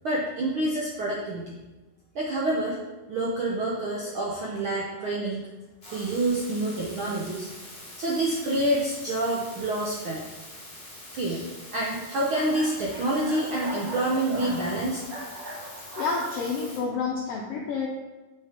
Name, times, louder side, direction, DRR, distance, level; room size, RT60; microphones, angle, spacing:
voice 1, 0.0-1.5 2.1-2.8 3.1-5.4 5.9-7.5 8.0-10.2 11.1-11.5 11.7-15.0, right 1 dB, 70° right, -4 dB, 1.2 m, -27 dB
sound 1, 5.8-16.8, left 1 dB, 25° left, 1.3 m, -44 dB
sound 2, 5.8-6.1 6.7-6.8 11.9-17.2, right 1 dB, 50° right, 1.6 m, -41 dB
voice 2, 16.0-17.9, left 4 dB, 80° left, -2 dB, 1.4 m, -29 dB
8.2 x 5.1 x 4.3 m, 1.2 s
omnidirectional pair, 3.6 m